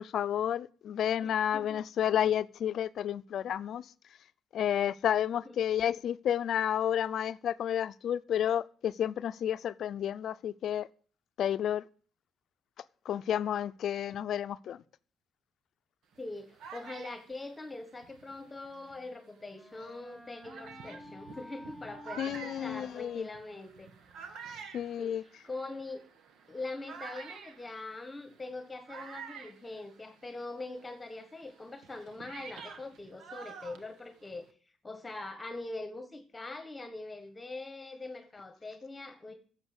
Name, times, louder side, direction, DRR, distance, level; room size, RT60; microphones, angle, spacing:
voice 1, 0.0-3.9 4.5-10.9 11.4-11.8 13.1-14.8 22.2-23.3 24.5-25.2, left 10 dB, 70° left, 0.5 m, -31 dB
voice 2, 1.2-1.8 5.4-5.6 16.2-23.9 25.0-26.0 26.5-34.4 34.8-39.3, left 2 dB, 20° left, 1.5 m, -43 dB
sound 1, 16.1-19.2 19.8-19.9 20.4-30.5 30.7-34.5, right 6 dB, 75° right, 1.3 m, -49 dB
Wind instrument woodwind instrument, 18.6-24.4, left 1 dB, ahead, 1.3 m, -53 dB
11.0 x 7.4 x 8.0 m
cardioid pair, 90°, 0 cm